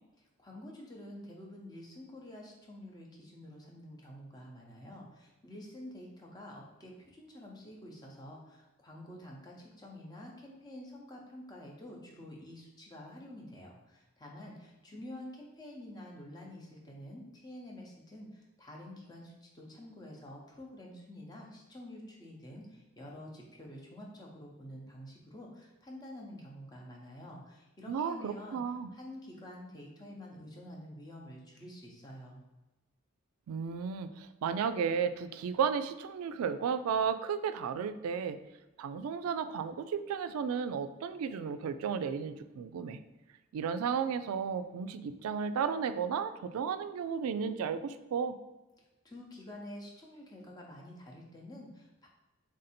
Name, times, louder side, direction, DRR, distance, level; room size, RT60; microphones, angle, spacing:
voice 1, 0.4-28.6 28.9-32.4 49.0-52.1, left 1 dB, 20° left, -1 dB, 0.6 m, -48 dB
voice 2, 27.9-28.9 33.5-38.4 38.8-43.0 43.5-48.3, right 6 dB, 90° right, 12 dB, 0.3 m, -33 dB
3.6 x 2.6 x 4.1 m, 1.1 s
head